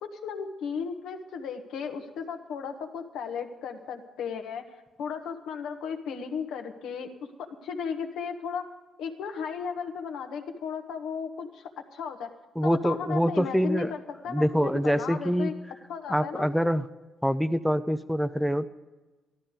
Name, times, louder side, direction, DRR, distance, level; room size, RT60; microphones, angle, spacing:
voice 1, 0.0-4.7 5.0-7.1 7.4-8.7 9.0-12.3 12.6-15.5 15.9-16.5, left 6 dB, 85° left, 5 dB, 1.4 m, -35 dB
voice 2, 12.6-13.9 14.3-15.6 16.1-16.9 17.2-18.7, equal, ahead, 13 dB, 0.5 m, -25 dB
13.0 x 12.5 x 5.1 m, 1.2 s
cardioid pair, 90°, 0 cm